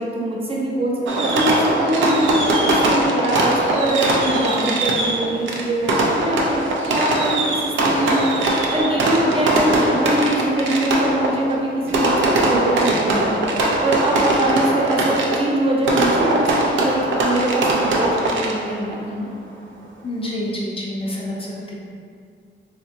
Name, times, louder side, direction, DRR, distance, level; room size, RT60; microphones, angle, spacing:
voice 1, 0.0-7.7 8.0-19.3, right 1 dB, 30° right, -4 dB, 0.6 m, -23 dB
Fireworks, 1.1-18.8, right 2 dB, 80° right, 0.5 m, -21 dB
voice 2, 20.0-21.7, left 1 dB, 30° left, -4 dB, 0.5 m, -28 dB
3.6 x 2.9 x 2.6 m, 2.3 s
cardioid pair, 110°, 19 cm